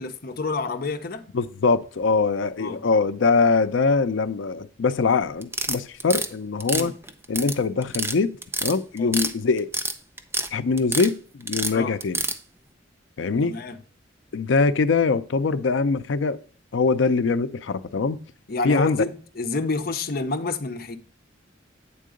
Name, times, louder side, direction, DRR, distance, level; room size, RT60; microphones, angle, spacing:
voice 1, 0.0-1.2 2.6-2.8 6.7-6.9 9.0-9.1 11.7-12.0 13.4-13.8 18.5-21.0, left 3 dB, 50° left, 0.7 m, -28 dB
voice 2, 1.3-6.9 7.3-9.7 10.5-12.2 13.2-13.6 14.3-16.4 16.7-18.2 18.6-19.0, left 4 dB, 90° left, 0.5 m, -23 dB
sound 1, 5.4-6.3 6.6-7.5 7.8-8.1 8.4-9.3 9.6-10.5 10.8-11.1 11.5-12.4, right 3 dB, 15° right, 0.5 m, -27 dB
8.5 x 3.7 x 5.0 m
head